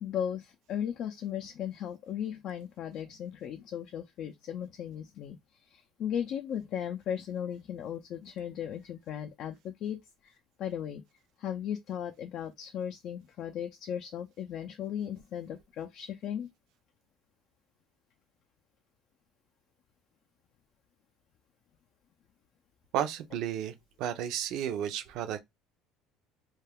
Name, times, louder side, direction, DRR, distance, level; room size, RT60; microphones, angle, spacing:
voice 1, 0.0-5.4 5.7-10.0 10.2-10.3 10.6-11.0 11.4-16.5, left 9 dB, 60° left, 0.4 m, -36 dB
voice 2, 22.9-25.4, right 10 dB, 65° right, 0.5 m, -33 dB
2.4 x 2.2 x 3.4 m
supercardioid pair, 95°, 0 cm